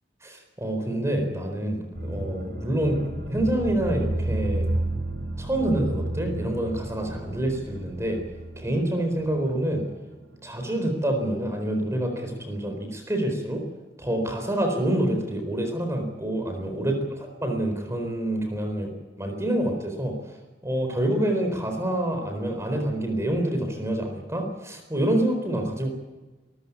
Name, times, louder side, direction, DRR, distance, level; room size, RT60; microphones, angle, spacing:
voice 1, 0.2-3.0 3.3-4.7 5.4-8.2 8.6-9.8 10.4-13.6 14.0-16.9 17.4-18.9 19.2-20.1 20.6-25.9, right 1 dB, 15° right, 4 dB, 4.2 m, -27 dB
sound 1, 1.9-11.2 11.5-11.6, right 1 dB, 80° right, 7.0 m, -32 dB
26.0 x 14.5 x 8.5 m, 1.2 s
head